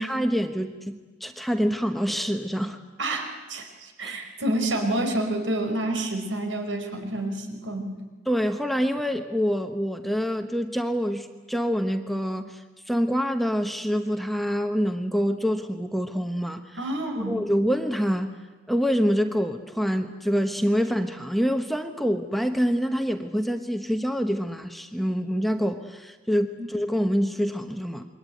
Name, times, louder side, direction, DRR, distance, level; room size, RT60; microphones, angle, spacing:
voice 1, 0.0-2.8 4.0-4.1 8.3-16.8 17.3-18.4 18.7-28.1, equal, ahead, 6 dB, 1.1 m, -26 dB
voice 2, 3.0-8.0 16.8-17.4 26.6-26.7, right 1 dB, 80° right, 5 dB, 4.8 m, -28 dB
27.5 x 23.0 x 9.3 m, 1.3 s
head